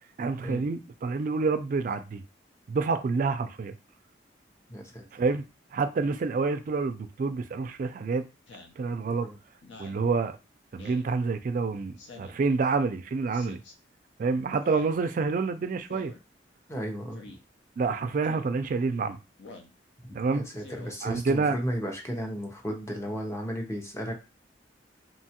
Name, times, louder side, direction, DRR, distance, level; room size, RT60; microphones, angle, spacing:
voice 1, 0.2-2.2 2.7-3.7 5.1-5.4 5.7-8.2 8.8-9.3 9.8-10.4 10.7-13.6 14.2-16.1 17.8-19.2 20.1-20.4 21.0-21.6, right 4 dB, 45° right, 0.3 m, -28 dB
voice 2, 4.7-5.0 9.2-9.4 16.7-17.2 20.1-24.1, equal, 15° left, 0.6 m, -34 dB
Speech synthesizer, 8.5-8.8 9.6-10.0 10.8-11.1 12.0-12.4 13.3-13.7 14.6-14.9 15.9-16.2 17.1-17.4 18.2-18.5 19.4-19.7 20.6-20.9, left 3 dB, 80° left, 0.6 m, -47 dB
2.8 x 2.3 x 2.8 m
head